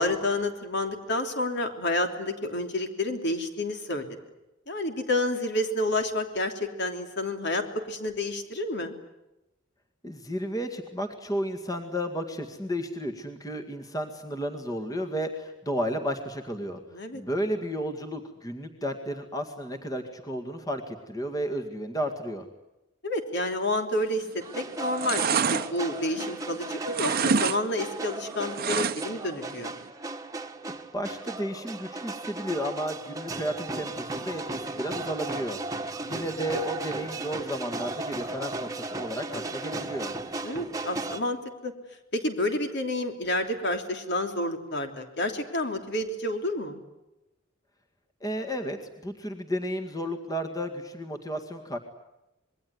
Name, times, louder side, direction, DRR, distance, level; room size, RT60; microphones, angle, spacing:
voice 1, 0.0-4.0 4.7-8.9 16.9-17.2 23.0-24.2 24.5-29.7 36.1-36.3 40.4-41.4 41.6-41.7 42.1-46.8, left 1 dB, 55° left, 6 dB, 3.2 m, -29 dB
voice 2, 10.0-16.8 17.1-22.5 30.9-35.6 36.0-40.1 48.2-51.8, equal, 20° left, 6 dB, 2.0 m, -33 dB
sound 1, 24.1-24.5 24.8-26.6 26.9-27.6 27.9-29.3 29.6-29.7, right 6 dB, 50° right, 1.0 m, -27 dB
sound 2, 24.4-41.2, right 2 dB, 15° right, 1.6 m, -36 dB
26.5 x 22.0 x 9.6 m, 0.95 s
head